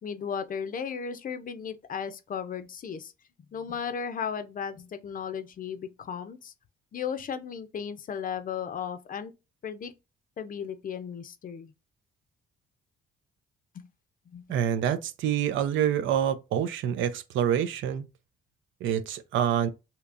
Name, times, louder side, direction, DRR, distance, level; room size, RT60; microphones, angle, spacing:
voice 1, 0.0-3.1 3.5-6.5 6.9-9.3 9.6-9.9 10.4-11.7 13.7-13.9 14.3-14.4, left 7 dB, 45° left, 0.5 m, -35 dB
voice 2, 14.5-18.0 18.8-19.7, right 9 dB, 75° right, 0.5 m, -26 dB
3.4 x 2.8 x 2.5 m
cardioid pair, 90°, 20 cm